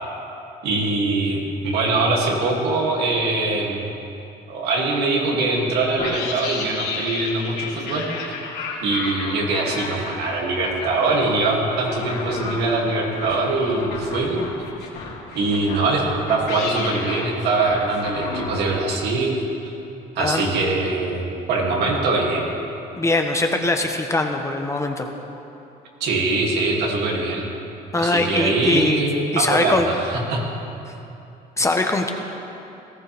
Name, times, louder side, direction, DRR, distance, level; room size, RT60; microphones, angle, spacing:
voice 1, 0.6-3.8 4.5-8.0 8.8-14.5 15.3-19.4 20.1-22.5 26.0-27.5 27.9-30.4, right 3 dB, 80° right, -2 dB, 2.8 m, -22 dB
sound 1, 6.0-18.5, left 4 dB, 70° left, 3.3 m, -32 dB
voice 2, 23.0-25.1 27.9-29.0 29.3-29.9 31.6-32.1, left 2 dB, 15° left, 4 dB, 1.1 m, -21 dB
18.5 x 14.0 x 3.6 m, 2.8 s
cardioid pair, 110°, 17 cm